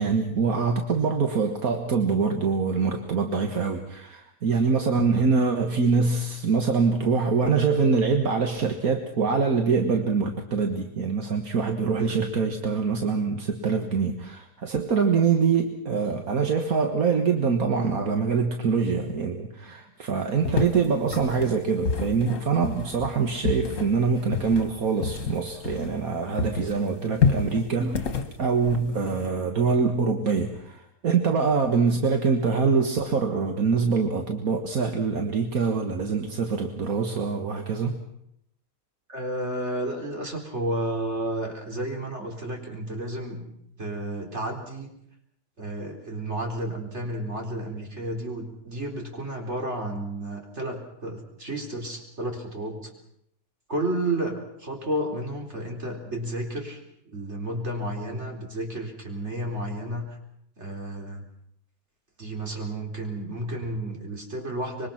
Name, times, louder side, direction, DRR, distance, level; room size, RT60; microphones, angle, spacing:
voice 1, 0.0-38.0, right 5 dB, 75° right, 4 dB, 2.0 m, -24 dB
voice 2, 12.0-12.3 39.1-43.4 43.8-44.9 45.6-52.9 53.7-60.2 60.6-61.2 62.2-64.9, right 1 dB, 50° right, 1 dB, 4.4 m, -32 dB
sound 1, 20.4-26.1 26.4-29.3, left 5 dB, 60° left, 1.8 m, -29 dB
25.0 x 23.0 x 5.9 m, 0.75 s
omnidirectional pair, 1.5 m